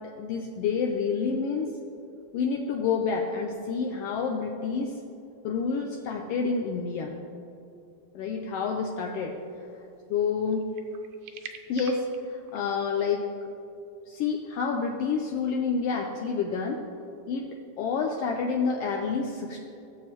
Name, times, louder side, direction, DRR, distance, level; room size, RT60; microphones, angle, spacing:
voice 1, 0.2-1.7 2.3-5.0 5.4-7.1 8.1-9.3 10.1-10.6 11.7-13.2 14.1-16.8 17.3-17.5 17.8-19.7, left 5 dB, 80° left, 1 dB, 1.4 m, -28 dB
sound 1, 9.5-9.6 10.4-12.8, right 7 dB, 80° right, 2.0 m, -46 dB
15.0 x 7.4 x 3.0 m, 2.7 s
omnidirectional pair, 3.4 m